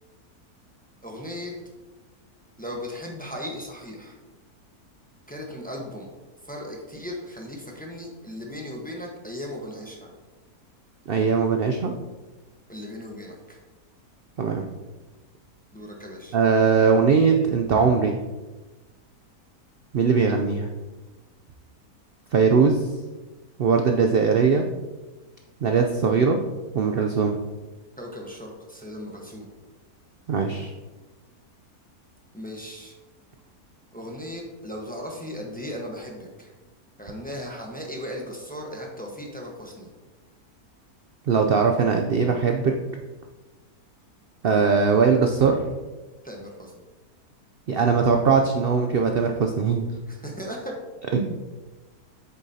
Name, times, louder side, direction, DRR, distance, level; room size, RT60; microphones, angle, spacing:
voice 1, 1.0-1.5 2.6-4.2 5.3-6.1 6.5-10.1 12.7-13.6 15.7-16.4 28.0-29.5 32.3-33.0 33.9-36.5 37.0-39.9 46.2-46.7 50.1-50.8, left 1 dB, 5° left, 0 dB, 0.9 m, -37 dB
voice 2, 11.1-11.9 14.4-14.7 16.3-18.2 19.9-20.7 22.3-22.8 23.6-24.7 25.6-26.4 26.7-27.4 30.3-30.7 41.3-42.7 44.4-45.6 47.7-49.9 51.1-51.4, right 5 dB, 70° right, 4 dB, 0.5 m, -20 dB
8.4 x 6.9 x 2.8 m, 1.2 s
omnidirectional pair, 1.6 m